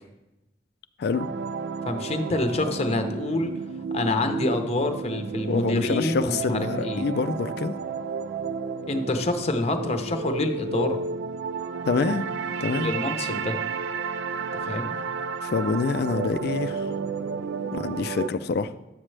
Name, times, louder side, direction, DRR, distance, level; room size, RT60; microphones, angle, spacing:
sound 1, 1.1-18.3, right 5 dB, 75° right, 0.3 m, -32 dB
voice 1, 1.9-3.5 3.9-7.0 8.9-11.0 12.8-13.6 14.7-14.9, left 2 dB, 35° left, 6 dB, 0.7 m, -27 dB
voice 2, 5.5-7.8 11.9-12.3 12.6-12.9 15.4-16.9 17.7-18.7, left 4 dB, 60° left, 11 dB, 0.4 m, -26 dB
11.0 x 7.4 x 3.3 m, 0.99 s
head